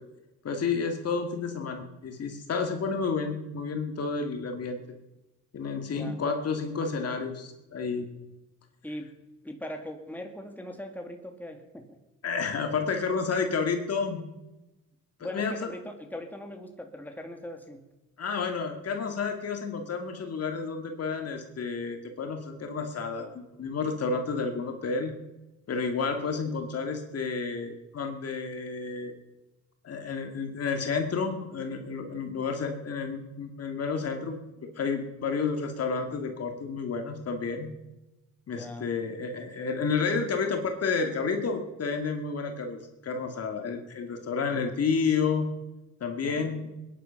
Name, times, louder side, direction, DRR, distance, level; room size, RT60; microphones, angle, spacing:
voice 1, 0.4-4.8 5.5-8.1 12.2-14.2 15.2-15.7 18.2-25.2 25.7-29.1 29.8-34.4 34.6-37.7 38.5-45.5 46.0-46.7, left 5 dB, 55° left, 4 dB, 2.4 m, -30 dB
voice 2, 5.9-6.2 8.8-9.1 9.4-11.9 15.2-17.9 38.6-38.9 46.2-46.4, left 1 dB, 5° left, 4 dB, 2.3 m, -40 dB
21.0 x 10.5 x 5.9 m, 1.0 s
cardioid pair, 90°, 30 cm